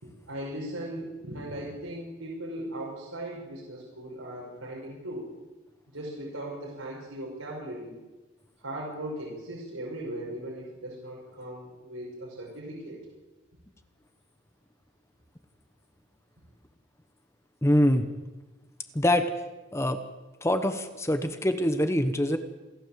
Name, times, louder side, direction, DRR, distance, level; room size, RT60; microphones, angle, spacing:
voice 1, 0.0-5.3 5.9-7.9 8.6-13.0, right 1 dB, 85° right, -3 dB, 5.9 m, -38 dB
voice 2, 17.6-18.1 18.9-19.3 19.7-20.0 20.4-22.4, left 1 dB, 15° left, 8 dB, 1.0 m, -24 dB
27.5 x 13.0 x 7.5 m, 1.1 s
head